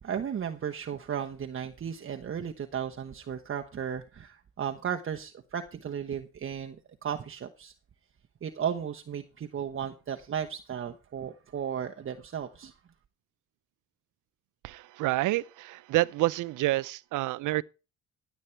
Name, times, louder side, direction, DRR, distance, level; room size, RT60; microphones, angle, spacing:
voice 1, 0.0-6.8 7.0-7.7 8.4-12.7, right 8 dB, 45° right, 1.0 m, -35 dB
voice 2, 14.6-17.6, right 18 dB, 85° right, 0.6 m, -28 dB
15.5 x 8.4 x 4.5 m
cardioid pair, 90°, 30 cm